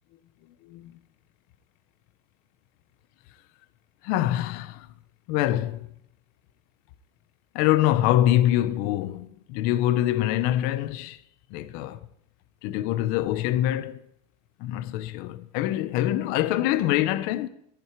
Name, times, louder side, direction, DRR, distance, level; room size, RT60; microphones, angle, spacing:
voice 1, 4.0-4.9 5.3-5.8 7.5-11.2 11.5-12.0 12.6-14.0 14.6-17.5, left 13 dB, 45° left, 0.6 m, -24 dB
13.0 x 10.5 x 4.6 m
supercardioid pair, 170°, 20 cm